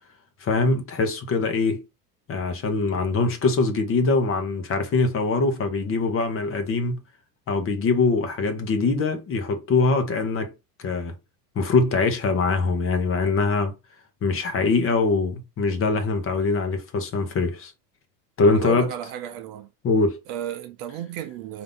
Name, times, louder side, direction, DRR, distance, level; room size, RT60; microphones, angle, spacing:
voice 1, 0.4-1.8 2.3-7.0 7.5-10.5 10.8-11.1 11.6-13.7 14.2-17.7 18.4-18.9 19.8-20.2, left 3 dB, 25° left, 0.9 m, -23 dB
voice 2, 18.4-19.7 20.3-21.6, right 10 dB, 50° right, 0.7 m, -34 dB
3.8 x 2.7 x 3.9 m
hypercardioid pair, 105°, 49 cm